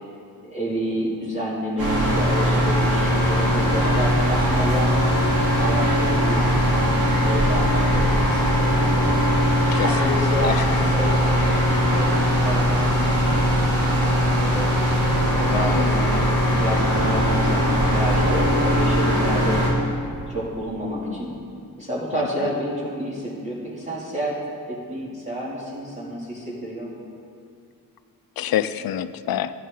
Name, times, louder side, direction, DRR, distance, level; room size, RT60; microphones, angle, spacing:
voice 1, 0.4-4.9 5.6-9.1 9.8-11.2 11.9-14.7 15.3-16.3 16.6-19.6 20.3-21.3 21.8-24.4 24.7-26.9, equal, 20° right, -8 dB, 2.6 m, -29 dB
sound 1, 1.8-19.7, equal, 85° right, 2.7 m, -20 dB
voice 2, 9.7-10.6 15.5-15.9 22.1-22.5 28.4-29.5, left 11 dB, 85° left, 14 dB, 0.5 m, -27 dB
13.0 x 11.0 x 3.8 m, 2.3 s
wide cardioid pair, 120°, 35 cm